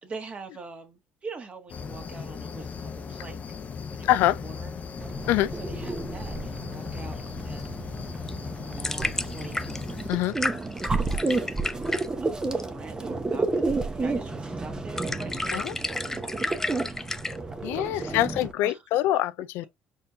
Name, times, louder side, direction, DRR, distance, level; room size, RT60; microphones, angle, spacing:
voice 1, 0.0-3.4 3.9-4.7 5.2-5.3 5.5-7.6 8.7-9.7 10.8-11.6 12.2-16.9 17.3-17.4 17.7-18.2 18.6-18.8, right 4 dB, 35° right, 1.6 m, -44 dB
sound 1, 1.7-10.1, left 5 dB, 40° left, 0.7 m, -37 dB
voice 2, 4.0-4.4 5.3-5.5 10.1-10.4 15.5-15.7 17.6-19.7, left 14 dB, 80° left, 0.3 m, -24 dB
sound 2, 5.0-18.5, right 3 dB, 20° right, 0.9 m, -31 dB
sound 3, 8.1-17.4, left 2 dB, 10° left, 0.4 m, -34 dB
4.3 x 3.6 x 2.6 m
cardioid pair, 95°, 4 cm